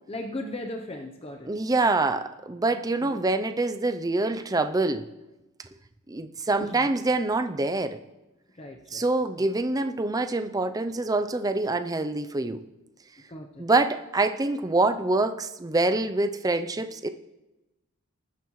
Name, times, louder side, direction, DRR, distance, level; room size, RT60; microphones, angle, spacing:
voice 1, 0.1-1.5 3.0-3.2 6.6-6.9 8.5-9.1 13.3-13.6, left 1 dB, 25° left, 3 dB, 0.7 m, -37 dB
voice 2, 1.5-5.1 6.1-8.0 8.9-12.6 13.6-17.1, right 2 dB, 15° right, 8 dB, 0.5 m, -25 dB
19.5 x 9.2 x 3.1 m, 1.0 s
head